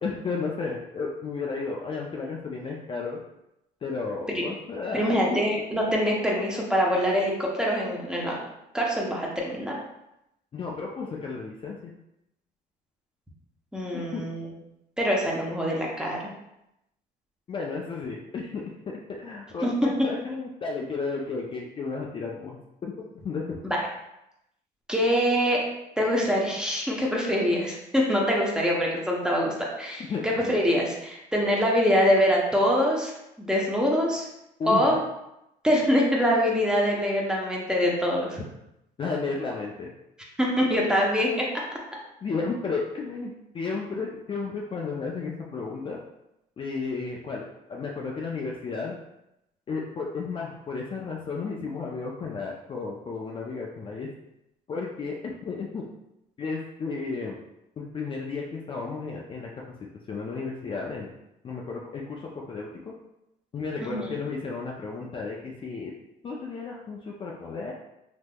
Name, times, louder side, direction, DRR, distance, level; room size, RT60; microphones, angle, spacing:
voice 1, 0.0-3.2 3.8-5.5 10.5-11.9 13.9-14.2 17.5-22.9 23.2-23.4 30.1-30.4 34.6-34.9 39.0-39.9 40.6-40.7 42.2-46.0 46.6-48.9 49.7-54.1 54.7-55.8 56.4-57.4 57.8-59.5 60.1-61.1 61.4-62.9 63.5-65.9 66.2-67.7, left 4 dB, 30° left, -2 dB, 0.4 m, -33 dB
voice 2, 4.9-8.4 8.7-9.8 13.7-14.5 15.0-16.3 19.6-19.7 23.6-23.8 24.9-25.6 26.0-34.3 34.7-35.0 35.6-38.4 40.4-41.5 63.8-64.1, equal, 5° right, -3 dB, 0.7 m, -24 dB
3.4 x 2.9 x 2.2 m, 0.86 s
cardioid pair, 110°, 17 cm